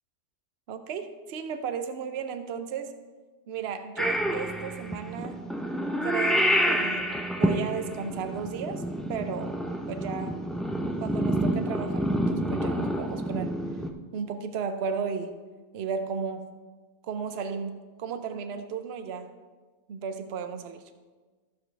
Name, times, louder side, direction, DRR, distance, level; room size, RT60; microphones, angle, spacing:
voice 1, 0.7-3.0 3.5-5.4 6.0-7.1 7.4-8.8 9.1-9.6 9.9-10.4 11.0-13.5 14.1-15.3 15.7-16.5 17.1-19.3 19.9-20.8, right 6 dB, 60° right, 8 dB, 0.9 m, -34 dB
Purr / Meow, 4.0-13.9, equal, ahead, 0.3 m, -28 dB
14.0 x 6.8 x 3.3 m, 1.4 s
omnidirectional pair, 1.3 m